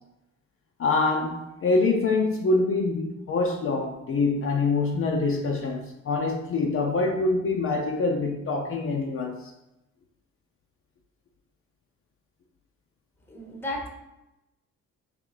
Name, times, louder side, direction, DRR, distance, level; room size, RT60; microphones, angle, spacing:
voice 1, 0.8-9.5, left 3 dB, 45° left, 1 dB, 0.5 m, -25 dB
voice 2, 13.3-13.9, left 1 dB, 5° left, 0 dB, 0.9 m, -33 dB
3.7 x 3.2 x 3.1 m, 0.92 s
cardioid pair, 90°, 30 cm